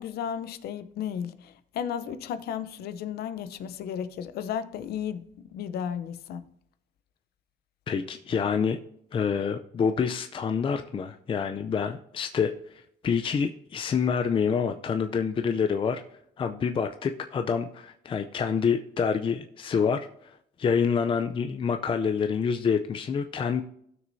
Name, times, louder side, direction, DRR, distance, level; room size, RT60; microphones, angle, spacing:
voice 1, 0.0-6.5, left 8 dB, 70° left, 0.7 m, -34 dB
voice 2, 7.9-8.8 9.1-16.0 16.4-23.6, left 6 dB, 30° left, 0.5 m, -27 dB
16.5 x 6.3 x 2.7 m
cardioid pair, 110°, 17 cm